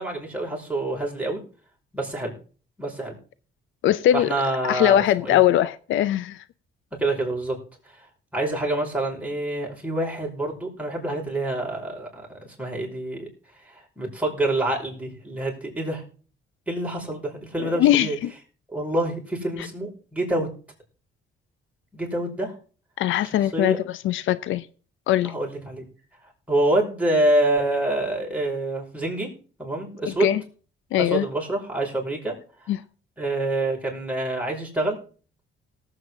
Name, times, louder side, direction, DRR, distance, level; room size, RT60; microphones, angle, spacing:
voice 1, 0.0-1.4 1.9-2.3 2.8-3.2 4.1-5.4 7.0-7.6 8.3-13.3 14.0-16.0 16.7-18.2 18.7-20.5 21.9-22.5 23.5-23.8 25.3-25.9 26.5-29.3 29.6-30.3 31.0-32.3 33.2-35.0, right 1 dB, 5° right, 5.3 m, -26 dB
voice 2, 3.8-4.3 4.7-6.4 17.6-18.3 23.0-24.6 25.1-25.3 30.1-30.4 30.9-31.2 32.7-32.8, left 12 dB, 80° left, 0.6 m, -21 dB
18.5 x 7.9 x 3.7 m
cardioid pair, 90°, 20 cm